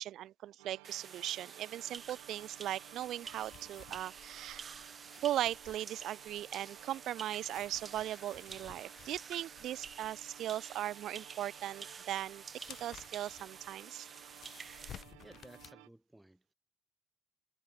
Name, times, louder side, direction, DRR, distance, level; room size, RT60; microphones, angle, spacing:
voice 1, 0.0-4.8 5.2-12.4 12.7-14.1, right 12 dB, 65° right, 0.5 m, -38 dB
sound 1, 0.6-15.9, right 37 dB, 85° right, 1.7 m, -58 dB
sound 2, 0.8-15.0, right 6 dB, 40° right, 2.7 m, -50 dB
sound 3, 1.9-15.7, left 10 dB, 60° left, 0.9 m, -58 dB
voice 2, 15.0-16.5, right 1 dB, 10° right, 3.7 m, -57 dB
supercardioid pair, 65°, 0 cm